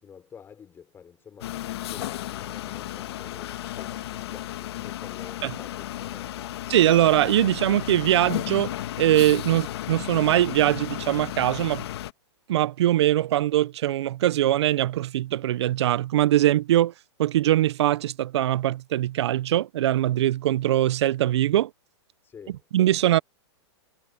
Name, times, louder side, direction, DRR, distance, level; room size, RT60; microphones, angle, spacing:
voice 1, 0.0-6.5 22.2-22.6, left 7 dB, 15° left, 4.6 m, -48 dB
sound 1, 1.4-12.1, left 14 dB, 60° left, 1.7 m, -34 dB
voice 2, 6.7-8.7 9.0-11.8 12.5-16.9 17.2-21.7 22.7-23.2, right 13 dB, 65° right, 0.6 m, -22 dB
hypercardioid pair, 150°, 15 cm